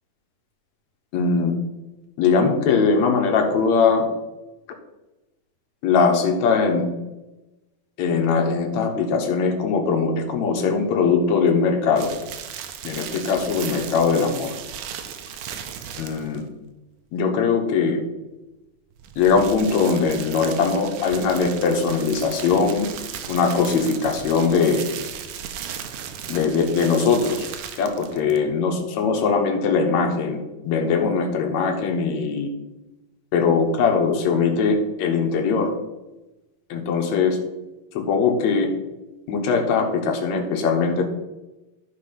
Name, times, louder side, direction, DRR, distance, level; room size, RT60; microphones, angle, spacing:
voice 1, 1.1-1.5 2.2-4.1 5.8-6.8 8.0-12.1 12.8-14.5 16.0-16.4 17.1-18.0 19.2-22.9 23.3-25.0 26.3-27.5 27.8-30.4 30.7-32.5 33.3-35.7 36.7-37.4 37.9-38.7 39.3-41.0, left 5 dB, 65° left, 3 dB, 2.3 m, -21 dB
sound 1, 12.0-16.5 18.9-28.5, right 8 dB, 75° right, 2.2 m, -36 dB
12.0 x 4.4 x 5.8 m, 1.0 s
omnidirectional pair, 3.7 m